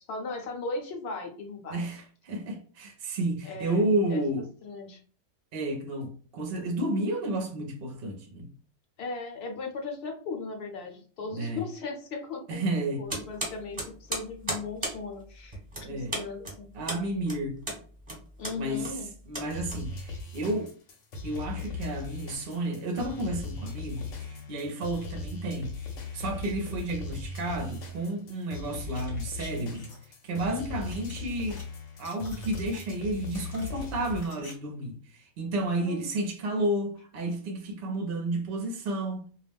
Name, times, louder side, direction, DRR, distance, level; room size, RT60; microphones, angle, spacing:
voice 1, 0.1-1.8 3.4-4.2 4.6-5.0 9.0-12.7 13.0-15.6 15.9-16.7 17.0-17.1 18.4-19.1 35.8-36.1, left 3 dB, 60° left, 0.8 m, -37 dB
voice 2, 1.7-4.4 5.5-8.5 11.3-11.6 12.5-13.0 15.8-16.2 16.7-17.6 18.6-19.0 19.2-20.7 21.2-25.8 26.1-29.9 30.2-31.6 32.0-39.3, right 1 dB, 60° right, 0.7 m, -31 dB
sound 1, 13.1-20.3, right 1 dB, 25° right, 1.0 m, -36 dB
sound 2, 19.5-34.3, left 3 dB, 80° left, 1.0 m, -39 dB
sound 3, 28.8-30.1 30.9-31.6 31.9-32.9 33.3-34.5 34.8-34.9, left 1 dB, 25° left, 0.6 m, -49 dB
2.3 x 2.1 x 3.3 m
omnidirectional pair, 1.3 m